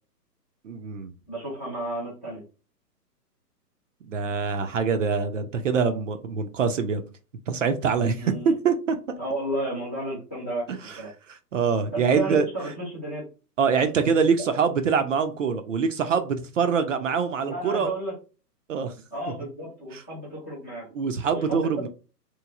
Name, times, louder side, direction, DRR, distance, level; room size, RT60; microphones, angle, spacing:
voice 1, 0.6-1.1 4.1-7.0 7.5-9.0 10.7-11.0 11.5-12.5 13.6-17.9 18.7-18.9 19.9-20.0 20.9-21.9, right 6 dB, 50° right, 8 dB, 0.5 m, -24 dB
voice 2, 1.3-2.4 8.2-8.5 9.2-11.1 11.9-13.2 17.4-18.2 19.1-20.9 21.3-21.9, right 1 dB, 10° left, -11 dB, 0.4 m, -32 dB
3.0 x 2.5 x 2.4 m, 0.33 s
hypercardioid pair, 135°, 49 cm